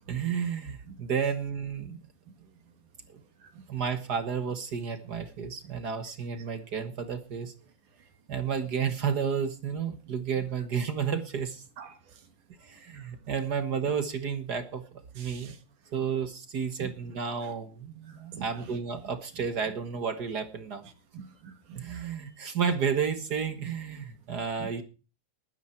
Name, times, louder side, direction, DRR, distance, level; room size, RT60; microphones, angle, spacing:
voice 1, 0.1-2.0 3.1-3.2 3.7-7.5 8.3-11.6 12.6-15.5 15.9-20.8 21.7-24.8, right 6 dB, 50° right, 9 dB, 1.2 m, -32 dB
voice 2, 11.8-12.2 15.2-15.6 16.8-16.9 17.4-17.5 18.1-18.8 21.1-22.0 24.6-24.7, right 6 dB, 65° right, 7 dB, 3.3 m, -45 dB
20.5 x 9.9 x 4.5 m, 0.34 s
omnidirectional pair, 3.9 m